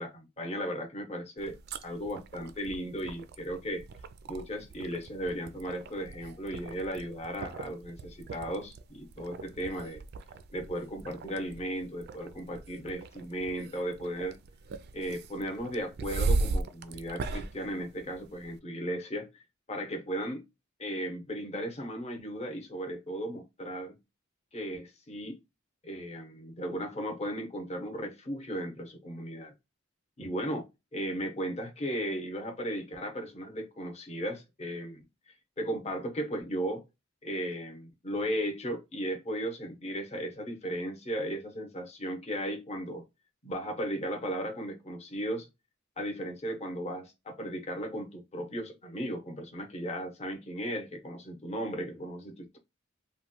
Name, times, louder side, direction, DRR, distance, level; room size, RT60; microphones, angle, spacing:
voice 1, 0.0-1.5 1.8-3.8 4.3-10.0 10.5-14.4 14.9-19.4 19.7-20.5 20.8-24.0 24.5-25.4 25.8-29.5 30.2-35.1 35.6-36.8 37.2-43.0 43.4-45.5 46.0-52.6, equal, 35° left, 0.7 m, -36 dB
sound 1, 1.4-18.6, right 3 dB, 50° right, 0.3 m, -38 dB
3.0 x 2.1 x 2.8 m
head